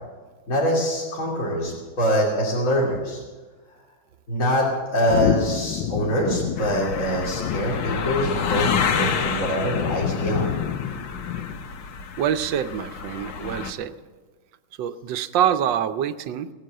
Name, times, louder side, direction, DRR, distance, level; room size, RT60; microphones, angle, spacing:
voice 1, 0.5-3.2 4.3-10.5, equal, 40° left, -5 dB, 3.2 m, -24 dB
sound 1, 5.1-11.8, left 9 dB, 75° left, 1.5 m, -29 dB
sound 2, 6.6-13.7, left 6 dB, 60° left, 1.3 m, -30 dB
voice 2, 12.2-14.0 14.8-16.5, right 9 dB, 70° right, 11 dB, 1.3 m, -25 dB
17.5 x 10.0 x 7.6 m, 1.3 s
omnidirectional pair, 2.2 m